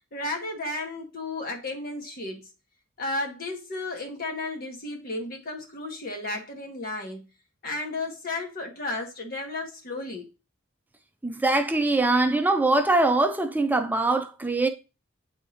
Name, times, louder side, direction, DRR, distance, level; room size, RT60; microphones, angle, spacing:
voice 1, 0.1-2.5 3.0-7.2 7.6-10.3, left 2 dB, 50° left, 1.3 m, -33 dB
voice 2, 11.2-14.7, right 2 dB, 10° right, 0.5 m, -22 dB
9.5 x 3.6 x 2.8 m
head